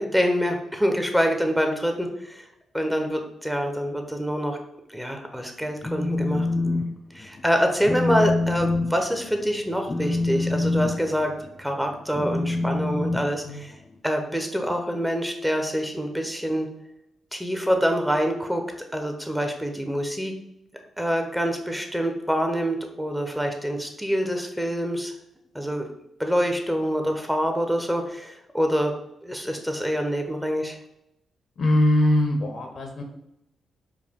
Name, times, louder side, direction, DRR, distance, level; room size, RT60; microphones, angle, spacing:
voice 1, 0.0-2.5 2.7-4.6 4.9-6.5 7.1-11.3 11.6-13.7 14.0-16.7 17.3-18.6 18.9-20.3 21.0-25.1 25.5-25.9 26.2-28.9 29.2-30.8, equal, 5° right, 3 dB, 0.8 m, -26 dB
Telephone, 5.6-6.9 7.2-7.5 7.8-13.9, left 2 dB, 25° left, 0.5 m, -26 dB
voice 2, 31.6-33.0, left 1 dB, 65° left, 4 dB, 0.8 m, -21 dB
4.7 x 2.2 x 3.6 m, 0.82 s
supercardioid pair, 50°, 0 cm